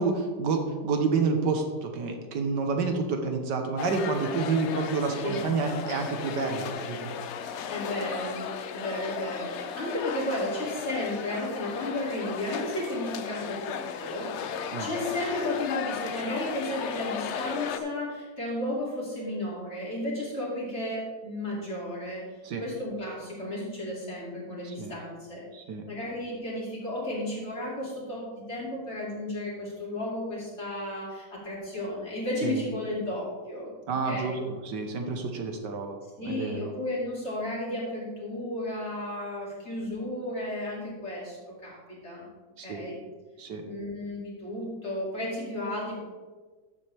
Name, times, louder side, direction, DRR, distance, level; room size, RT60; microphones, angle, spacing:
voice 1, 0.0-7.1 14.7-14.9 22.4-22.6 24.8-24.9 25.5-25.8 32.4-32.6 33.9-36.0 36.2-36.7 42.6-42.8 43.4-43.6, right 4 dB, 75° right, 4 dB, 1.6 m, -29 dB
sound 1, 3.8-17.8, left 7 dB, 85° left, 0.6 m, -35 dB
voice 2, 7.7-22.2 22.6-25.4 25.9-34.5 36.2-42.2 42.6-43.0 43.6-46.0, left 1 dB, 40° left, -5 dB, 2.9 m, -33 dB
12.5 x 7.3 x 3.4 m, 1.4 s
omnidirectional pair, 1.9 m